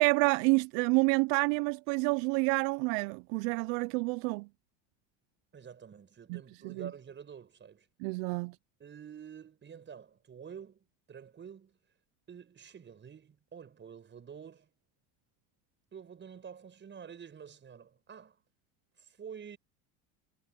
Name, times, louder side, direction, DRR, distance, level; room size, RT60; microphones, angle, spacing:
voice 1, 0.0-4.5 6.3-6.9 8.0-8.6, right 28 dB, 75° right, 0.5 m, -28 dB
voice 2, 5.5-7.9 8.8-11.8 12.3-14.7 15.9-18.4 19.0-19.6, right 7 dB, 25° right, 5.8 m, -48 dB
cardioid pair, 130°, 41 cm